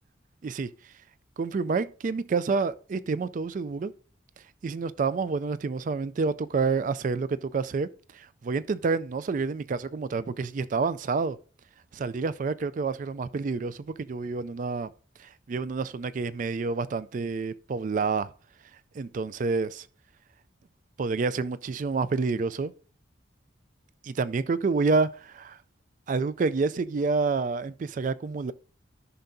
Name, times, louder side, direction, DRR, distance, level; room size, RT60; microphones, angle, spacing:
voice 1, 1.4-3.9 4.6-7.9 8.1-11.4 11.9-14.9 15.2-18.3 18.9-19.9 21.0-22.7 24.0-25.6 26.1-28.5, right 4 dB, 45° right, 0.3 m, -28 dB
14.0 x 5.7 x 2.6 m
head